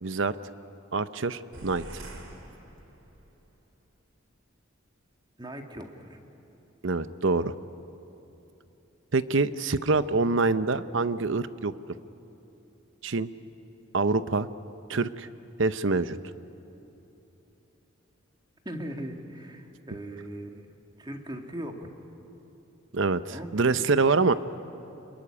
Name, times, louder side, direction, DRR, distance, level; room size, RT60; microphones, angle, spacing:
voice 1, 0.0-0.4 0.9-2.0 6.8-7.5 9.1-11.7 13.0-13.3 13.9-14.5 14.9-15.3 15.6-16.2 22.9-24.3, right 3 dB, 60° right, 14 dB, 0.8 m, -25 dB
sound 1, 1.5-3.4, right 1 dB, 85° right, 3.7 m, -45 dB
voice 2, 5.4-6.2 18.7-20.7 21.0-21.9 23.3-24.3, right 1 dB, 20° right, 4 dB, 1.9 m, -39 dB
26.5 x 21.5 x 9.9 m, 3.0 s
head